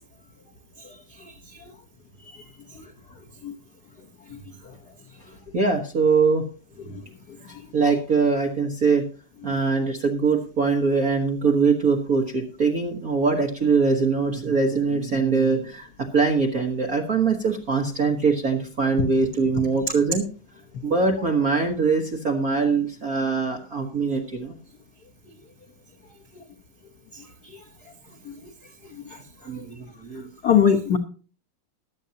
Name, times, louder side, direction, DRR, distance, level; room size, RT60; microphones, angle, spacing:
voice 1, 0.8-1.7 2.3-2.4 2.7-2.8 3.4-3.5 4.3-4.4 4.6-4.7 6.9-7.0 9.5-9.6 26.3-26.4 27.1-27.6 28.2-28.3 28.9-29.2 29.5-29.6 30.4-31.0, left 8 dB, 90° left, 3 dB, 0.8 m, -25 dB
voice 2, 5.5-6.5 7.4-9.1 9.4-20.3 20.8-24.5 29.5-30.3, right 4 dB, 55° right, 2 dB, 0.9 m, -22 dB
15.0 x 12.0 x 2.8 m, 0.37 s
omnidirectional pair, 3.5 m